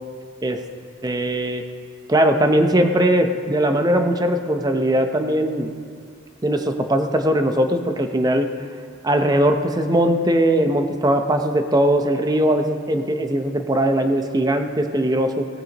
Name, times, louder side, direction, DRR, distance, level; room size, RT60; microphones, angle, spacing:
voice 1, 1.0-1.6 2.1-5.7 6.4-8.5 9.0-15.5, right 1 dB, 20° right, 6 dB, 0.7 m, -20 dB
17.0 x 14.5 x 3.0 m, 2.1 s
head